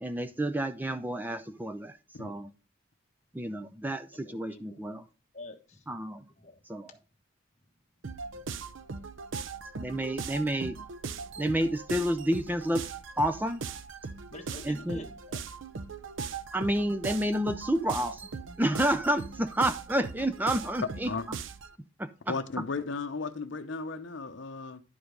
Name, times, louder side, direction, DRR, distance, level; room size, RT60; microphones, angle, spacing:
voice 1, 0.0-2.5 3.3-5.0 5.9-6.2 6.7-6.9 9.8-10.8 11.4-12.9 13.2-13.6 14.6-15.0 16.5-18.2 18.6-21.1 22.0-22.3, right 1 dB, 10° right, 0.4 m, -30 dB
voice 2, 4.1-4.8 5.3-5.8 6.4-6.6 8.3-8.4 14.3-15.4, left 2 dB, 35° left, 1.3 m, -47 dB
sound 1, 8.0-21.7, right 5 dB, 75° right, 0.7 m, -40 dB
voice 3, 22.3-24.8, left 4 dB, 65° left, 0.7 m, -35 dB
11.0 x 5.0 x 5.1 m
head